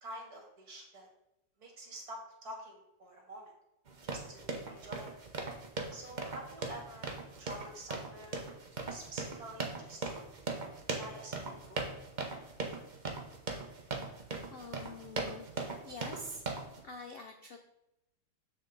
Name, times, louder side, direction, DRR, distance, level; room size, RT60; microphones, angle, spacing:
voice 1, 0.0-1.1 1.6-3.5 4.0-5.1 5.9-8.4 8.9-10.3 10.9-11.8, right 1 dB, 55° right, 1 dB, 2.4 m, -48 dB
sound 1, 3.9-16.8, right 3 dB, 35° right, 0.8 m, -40 dB
voice 2, 14.5-15.5 15.8-16.4 16.8-17.6, left 2 dB, 70° left, 5 dB, 0.5 m, -46 dB
7.1 x 6.8 x 3.9 m, 0.88 s
omnidirectional pair, 1.9 m